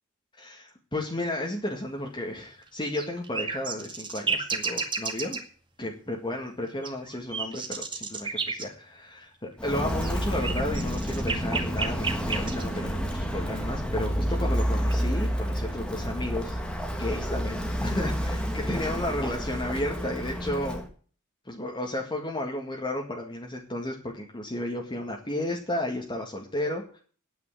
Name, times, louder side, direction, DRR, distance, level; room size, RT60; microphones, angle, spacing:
voice 1, 0.4-5.4 5.8-16.6 17.0-20.8 21.5-27.0, left 1 dB, 20° left, 0 dB, 2.1 m, -33 dB
sound 1, 2.8-5.4 6.8-8.6 9.9-12.7 14.3-14.9, right 5 dB, 20° right, 2.1 m, -31 dB
Walk footsteps, 9.6-20.9, equal, 5° left, 2.0 m, -29 dB
9.6 x 9.4 x 9.8 m, 0.43 s
head